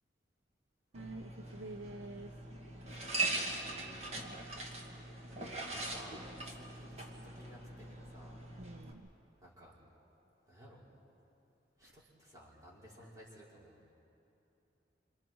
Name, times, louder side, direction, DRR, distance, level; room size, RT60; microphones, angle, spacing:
sound 1, 0.9-8.9, right 2 dB, 35° right, 2.1 m, -41 dB
voice 1, 0.9-2.3 8.6-9.1 11.8-12.0 13.0-13.1, right 2 dB, 75° right, 9 dB, 0.6 m, -48 dB
voice 2, 2.8-4.0 5.4-7.1 7.3-8.4 9.4-9.7 10.5-10.8 11.8-13.8, equal, 20° right, -6 dB, 5.3 m, -56 dB
28.0 x 27.0 x 4.7 m, 2.8 s
head